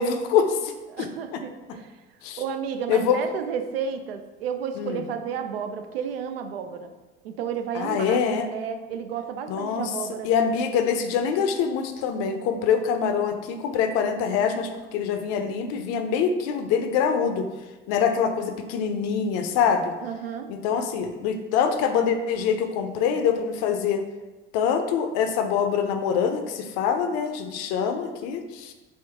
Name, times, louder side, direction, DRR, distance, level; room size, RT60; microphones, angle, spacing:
voice 1, 0.0-0.7 1.0-1.4 2.2-2.4 2.9-3.2 4.8-5.0 7.7-8.5 9.5-9.9 10.2-17.5 17.9-19.9 20.5-24.0 24.5-28.7, left 7 dB, 55° left, 7 dB, 0.5 m, -24 dB
voice 2, 0.9-1.9 2.4-6.9 7.2-8.2 8.5-10.3 20.0-20.5, right 7 dB, 80° right, 7 dB, 0.5 m, -32 dB
3.6 x 2.6 x 3.5 m, 1.2 s
hypercardioid pair, 70°, 29 cm